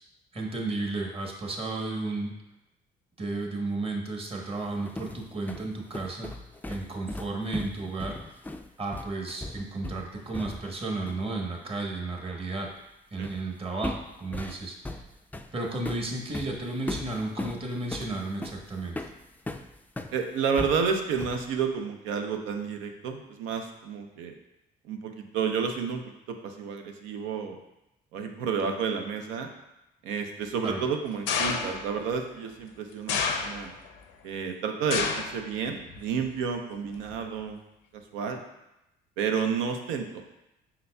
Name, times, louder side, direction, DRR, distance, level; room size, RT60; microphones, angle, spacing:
voice 1, 0.3-2.3 3.2-6.3 6.7-8.2 8.8-12.7 13.1-15.0 15.5-19.1 30.6-30.8, right 2 dB, 30° right, 1 dB, 1.0 m, -33 dB
sound 1, 4.6-10.8 11.1-11.3 13.2-13.5 13.8-20.2 20.6-21.5, left 1 dB, 10° left, 0.3 m, -38 dB
voice 2, 20.1-24.3 24.8-27.6 28.1-29.5 30.0-33.7 34.2-37.6 38.1-38.4 39.2-40.2, right 6 dB, 85° right, 4 dB, 0.6 m, -30 dB
sound 2, 31.3-31.9 33.1-33.9 34.9-35.4 35.8-36.3 37.1-37.2, left 5 dB, 80° left, 0.6 m, -29 dB
5.5 x 4.0 x 2.2 m, 0.89 s
supercardioid pair, 65°, 20 cm